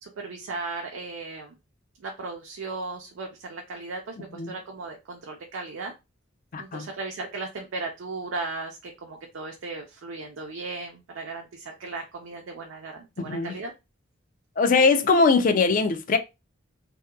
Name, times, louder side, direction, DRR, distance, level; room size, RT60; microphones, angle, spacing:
voice 1, 0.0-1.6 2.0-5.9 6.6-13.7, right 3 dB, 75° right, 0.4 m, -36 dB
voice 2, 6.5-6.9 13.2-13.5 14.6-16.2, left 4 dB, 40° left, 0.3 m, -21 dB
2.7 x 2.1 x 2.3 m
head